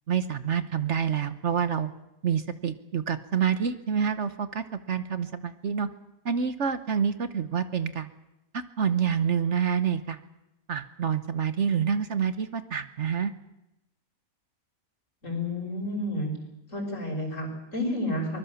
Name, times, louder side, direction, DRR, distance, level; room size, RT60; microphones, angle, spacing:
voice 1, 0.1-1.9 2.2-5.9 6.2-8.1 8.5-10.2 10.7-13.3, right 7 dB, 55° right, 12 dB, 1.2 m, -27 dB
voice 2, 15.2-16.3 16.7-18.4, left 1 dB, 60° left, 2 dB, 6.1 m, -30 dB
24.0 x 21.0 x 7.1 m, 0.93 s
omnidirectional pair, 1.5 m